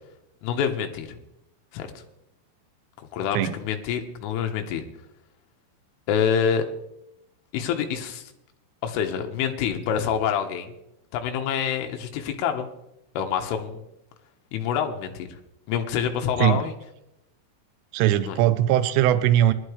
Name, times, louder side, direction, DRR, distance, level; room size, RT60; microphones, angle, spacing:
voice 1, 0.4-1.2 1.7-2.0 3.0-4.9 6.1-6.6 7.5-8.3 8.8-10.7 11.1-12.7 13.2-13.8 14.5-15.4 15.7-16.7 18.3-18.4, left 8 dB, 85° left, 5 dB, 3.7 m, -27 dB
voice 2, 17.9-19.5, right 12 dB, 90° right, 13 dB, 3.2 m, -20 dB
21.0 x 12.0 x 3.3 m, 0.86 s
omnidirectional pair, 5.6 m